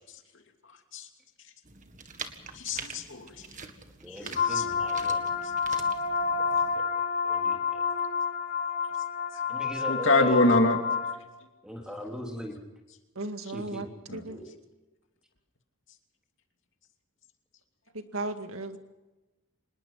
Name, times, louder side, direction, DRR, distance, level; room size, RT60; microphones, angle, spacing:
sound 1, 1.6-6.8, right 5 dB, 35° right, 1.9 m, -44 dB
voice 1, 2.5-3.3 4.1-4.6 9.9-10.8 14.1-14.2, left 2 dB, 60° left, 4 dB, 2.8 m, -25 dB
voice 2, 4.0-5.2 5.8-5.9 6.8-6.9 7.2-7.8 9.5-10.4 11.6-12.6 13.5-13.9 14.3-14.5, equal, 5° right, 1 dB, 3.6 m, -39 dB
sound 2, 4.4-11.1, left 6 dB, 40° left, 3.4 m, -29 dB
voice 3, 13.2-14.4 17.9-18.8, right 2 dB, 75° right, 7 dB, 2.0 m, -36 dB
26.0 x 21.0 x 5.8 m, 1.1 s
head